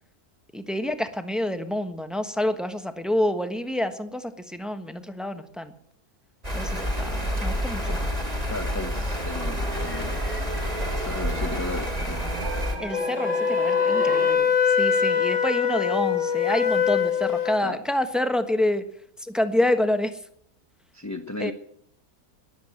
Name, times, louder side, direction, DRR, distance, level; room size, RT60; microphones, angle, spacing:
voice 1, 0.5-5.7 6.5-8.0 12.8-18.8 19.2-20.2 21.4-21.5, left 1 dB, ahead, 8 dB, 1.0 m, -27 dB
sound 1, 6.4-12.7, equal, 25° right, 3.0 m, -28 dB
voice 2, 8.5-10.6 11.0-12.2 17.6-17.8 20.9-21.5, left 2 dB, 15° left, 6 dB, 0.6 m, -35 dB
sound 2, 9.3-14.3, right 2 dB, 50° right, 3.3 m, -36 dB
Wind instrument woodwind instrument, 12.9-17.6, left 7 dB, 75° left, 1.6 m, -23 dB
20.0 x 8.1 x 7.7 m, 0.69 s
omnidirectional pair, 1.6 m